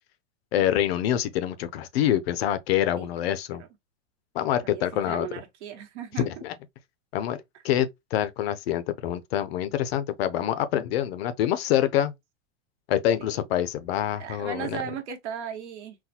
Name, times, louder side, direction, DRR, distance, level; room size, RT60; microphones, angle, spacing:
voice 1, 0.5-3.6 4.3-5.3 6.2-6.5 7.1-7.4 7.6-12.1 12.9-14.8, left 11 dB, 55° left, 0.5 m, -26 dB
voice 2, 3.0-3.3 3.6-3.7 4.6-6.3 13.2-13.4 14.2-16.0, right 8 dB, 65° right, 1.2 m, -37 dB
4.0 x 2.2 x 2.7 m
supercardioid pair, 160°, 37 cm